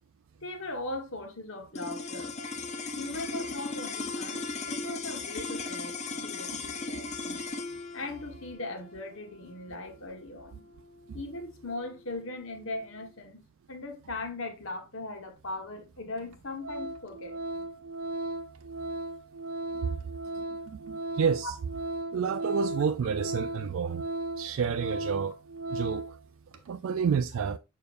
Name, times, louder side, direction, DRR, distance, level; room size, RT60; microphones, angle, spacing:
voice 1, 0.4-2.4 2.9-5.9 6.2-7.5 7.9-10.6 11.1-17.6 19.8-19.9 21.4-21.5, left 2 dB, 60° left, 1.4 m, -39 dB
sound 1, 1.7-12.2, left 3 dB, 30° left, 0.6 m, -37 dB
Organ, 15.6-15.7 16.2-16.3 16.6-26.2 26.5-26.7, right 2 dB, 85° right, 1.0 m, -36 dB
voice 2, 20.7-21.5 22.1-24.1 24.4-25.3 25.7-26.2 26.7-27.6, right 6 dB, 65° right, 0.3 m, -29 dB
6.7 x 6.7 x 2.5 m
head